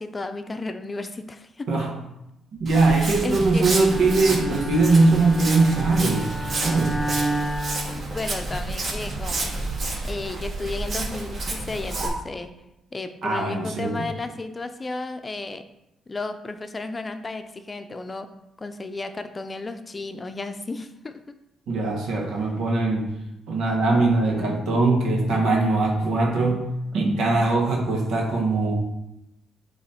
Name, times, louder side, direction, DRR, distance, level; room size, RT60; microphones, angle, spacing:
voice 1, 0.0-1.8 2.9-3.6 7.8-9.5 10.0-12.5 12.9-15.6 16.1-18.3 18.6-21.2, left 3 dB, 25° left, 8 dB, 0.6 m, -33 dB
voice 2, 2.6-6.3 6.6-7.0 13.2-14.0 21.7-23.1 23.5-26.6 26.9-28.7, right 3 dB, 75° right, -1 dB, 1.6 m, -21 dB
Walk footsteps, 2.7-12.1, right 2 dB, 45° right, 2.0 m, -30 dB
Bowed string instrument, 3.7-8.7, right 1 dB, ahead, 1.0 m, -31 dB
8.5 x 3.2 x 4.4 m, 0.87 s
cardioid pair, 90°, 0 cm